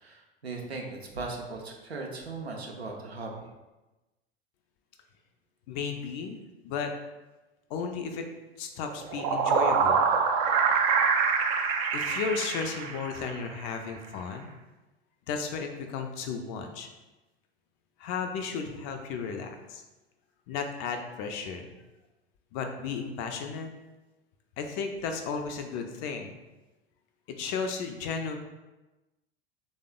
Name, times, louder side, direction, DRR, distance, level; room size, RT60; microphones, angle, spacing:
voice 1, 0.0-3.5, right 3 dB, 85° right, 1 dB, 0.6 m, -38 dB
voice 2, 5.7-6.4 6.6-6.9 7.7-8.3 8.6-14.5 15.3-16.9 18.0-19.8 20.5-21.7 22.5-23.7 24.6-26.4 27.3-28.4, left 5 dB, 35° left, 5 dB, 0.4 m, -34 dB
sound 1, 8.9-13.4, right 5 dB, 40° right, 0.4 m, -25 dB
3.3 x 2.1 x 3.6 m, 1.1 s
figure-of-eight pair, 80°, 31 cm